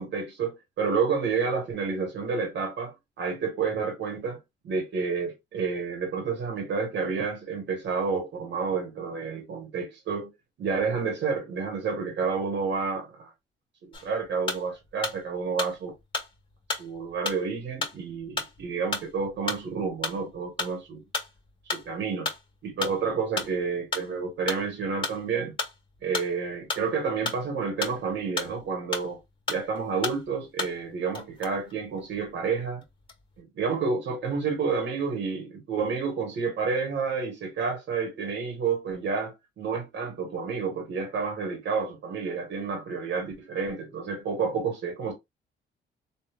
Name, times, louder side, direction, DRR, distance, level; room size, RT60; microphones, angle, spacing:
voice 1, 0.0-10.3 10.6-13.3 13.8-15.9 16.7-21.0 21.7-22.3 22.6-25.6 26.0-29.2 29.5-32.8 33.6-45.1, right 5 dB, 65° right, 1.3 m, -30 dB
sound 1, 13.9-15.2 15.6-29.2 29.5-30.9 31.1-32.4 32.8-33.4, left 3 dB, 25° left, 1.6 m, -34 dB
3.3 x 2.6 x 2.3 m
cardioid pair, 90°, 20 cm